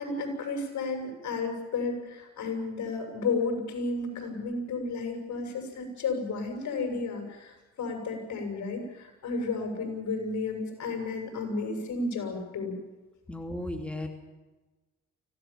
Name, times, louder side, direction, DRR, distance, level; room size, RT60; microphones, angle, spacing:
voice 1, 0.0-12.7, left 3 dB, 70° left, 4 dB, 7.2 m, -32 dB
voice 2, 13.3-14.1, left 1 dB, 5° left, 3 dB, 3.1 m, -35 dB
25.0 x 17.0 x 7.3 m, 1.2 s
cardioid pair, 90°, 30 cm